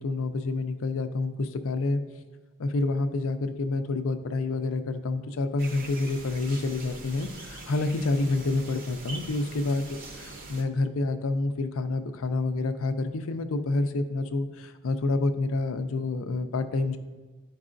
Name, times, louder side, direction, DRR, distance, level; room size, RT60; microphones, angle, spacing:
voice 1, 0.0-2.0 2.6-17.0, left 2 dB, 75° left, 9 dB, 0.5 m, -28 dB
sound 1, 5.6-10.6, right 2 dB, 40° right, 0.6 m, -43 dB
11.0 x 4.7 x 2.5 m, 1.3 s
head